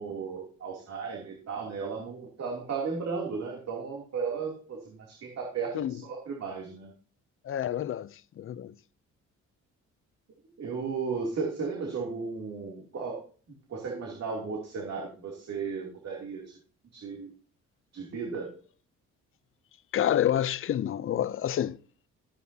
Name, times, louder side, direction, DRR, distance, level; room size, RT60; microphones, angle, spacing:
voice 1, 0.0-6.9 10.6-13.2 13.7-16.4 16.9-17.3 17.9-18.5, right 5 dB, 55° right, 2.9 m, -35 dB
voice 2, 7.4-8.7 19.9-21.8, left 11 dB, 45° left, 0.5 m, -28 dB
14.0 x 9.1 x 2.8 m
cardioid pair, 90°, 30 cm